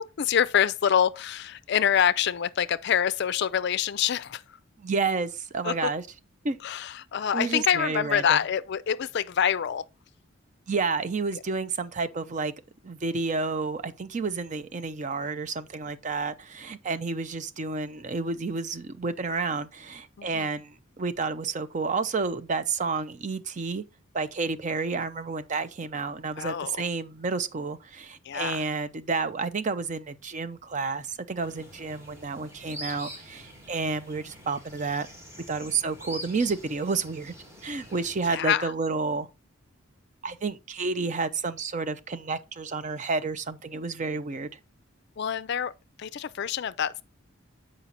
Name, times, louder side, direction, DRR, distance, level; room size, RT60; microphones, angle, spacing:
voice 1, 0.0-4.4 5.6-5.9 6.6-9.8 11.3-11.4 20.2-20.5 26.4-26.8 28.2-28.6 38.3-38.7 45.2-45.7 46.0-47.0, left 8 dB, 55° left, 0.4 m, -26 dB
voice 2, 4.8-6.0 6.4-6.6 7.3-8.4 10.7-12.5 12.8-23.8 24.1-35.1 35.5-37.3 37.6-39.3 40.2-44.5, right 4 dB, 35° right, 0.5 m, -30 dB
sound 1, 31.4-38.4, equal, 15° right, 1.8 m, -45 dB
7.1 x 5.0 x 4.0 m
head